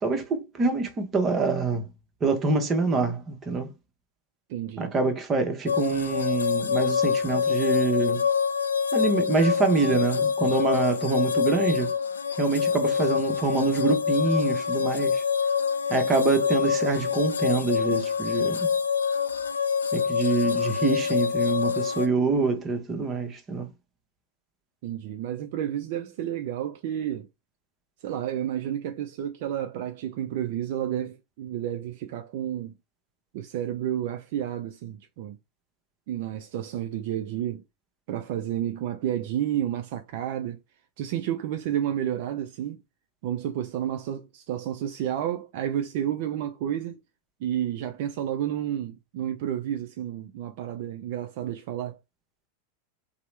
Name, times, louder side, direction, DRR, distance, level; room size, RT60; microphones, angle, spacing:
voice 1, 0.0-1.9 2.2-3.7 4.8-8.3 8.9-11.9 12.4-15.2 15.9-18.7 19.9-23.7, right 3 dB, 25° right, 0.8 m, -25 dB
voice 2, 4.5-4.9 24.8-27.3 28.0-32.7 33.3-35.4 36.1-37.6 38.1-40.6 41.0-42.8 43.2-47.0 47.4-52.0, right 11 dB, 60° right, 0.3 m, -31 dB
sound 1, 5.7-22.1, left 6 dB, 80° left, 0.3 m, -26 dB
2.8 x 2.0 x 3.1 m
hypercardioid pair, 95°, 0 cm